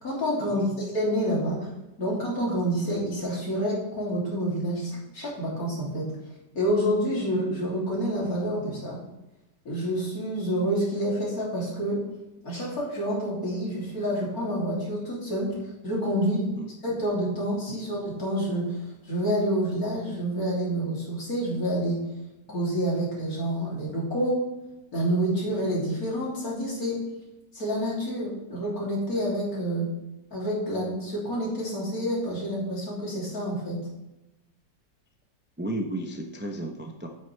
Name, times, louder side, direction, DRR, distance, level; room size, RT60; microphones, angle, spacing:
voice 1, 0.0-1.6 2.0-6.1 6.5-9.0 9.7-12.0 12.4-15.6 15.8-16.5 16.8-18.8 19.0-22.0 22.5-24.4 24.9-27.0 27.5-29.9 30.3-33.8, equal, 55° left, -5 dB, 3.6 m, -28 dB
voice 2, 35.6-37.1, right 1 dB, 15° right, 2 dB, 0.4 m, -33 dB
9.2 x 8.5 x 3.4 m, 0.98 s
omnidirectional pair, 1.8 m